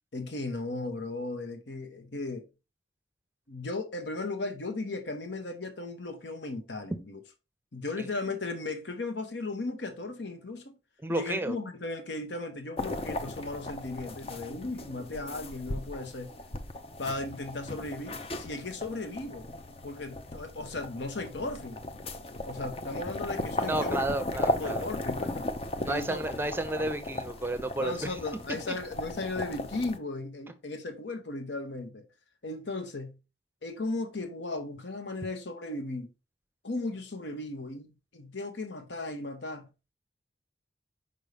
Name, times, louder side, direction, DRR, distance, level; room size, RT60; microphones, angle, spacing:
voice 1, 0.1-2.5 3.5-7.2 7.7-10.8 11.1-16.3 17.0-19.5 19.8-21.8 22.4-24.0 24.4-25.5 25.9-26.2 27.8-32.1 32.4-33.2 33.6-36.1 36.6-39.7, left 2 dB, 75° left, 1.1 m, -36 dB
voice 2, 11.0-11.6 23.7-24.8 25.9-28.1, right 1 dB, 10° right, 0.6 m, -31 dB
sound 1, 12.8-30.0, left 1 dB, 30° left, 0.5 m, -36 dB
5.4 x 5.3 x 3.4 m
head